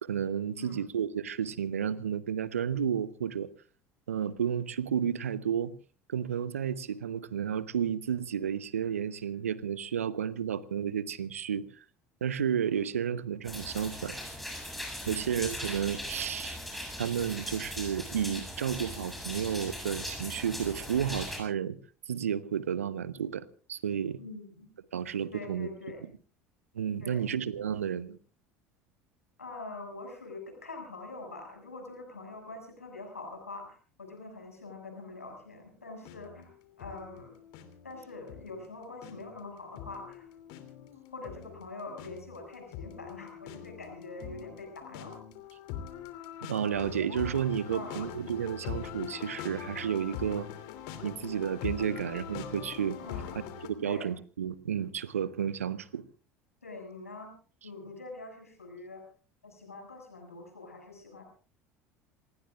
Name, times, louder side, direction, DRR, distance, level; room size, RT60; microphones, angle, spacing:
voice 1, 0.0-3.5 4.1-5.7 6.1-11.8 12.2-14.1 15.1-16.6 17.0-21.8 22.1-24.2 24.9-25.7 26.7-28.2 46.4-50.5 51.0-53.0 53.6-56.0, right 8 dB, 75° right, 0.9 m, -32 dB
sound 1, 13.4-21.4, equal, ahead, 7.5 m, -39 dB
voice 2, 24.2-24.7 25.3-26.0 27.0-27.3 29.4-37.4 37.8-40.3 41.1-45.2 47.7-48.1 53.0-53.5 53.8-54.1 56.6-57.3 57.6-59.0 59.4-61.2, left 3 dB, 85° left, 6.6 m, -44 dB
sound 2, 36.0-53.7, left 9 dB, 60° left, 2.9 m, -43 dB
28.0 x 19.5 x 2.4 m
figure-of-eight pair, 65°, 8 cm